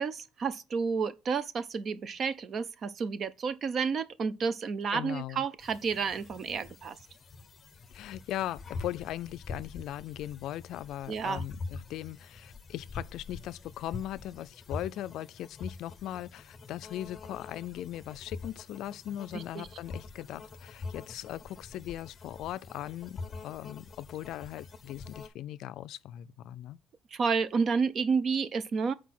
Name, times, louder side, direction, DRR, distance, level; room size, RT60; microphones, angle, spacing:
voice 1, 0.0-7.0 11.1-11.4 19.3-19.7 27.1-28.9, right 5 dB, 40° right, 0.6 m, -30 dB
voice 2, 4.9-5.5 7.9-26.8, left 13 dB, 65° left, 0.4 m, -39 dB
sound 1, 5.6-25.3, left 4 dB, 25° left, 0.7 m, -45 dB
8.2 x 4.6 x 5.9 m
cardioid pair, 150°, 0 cm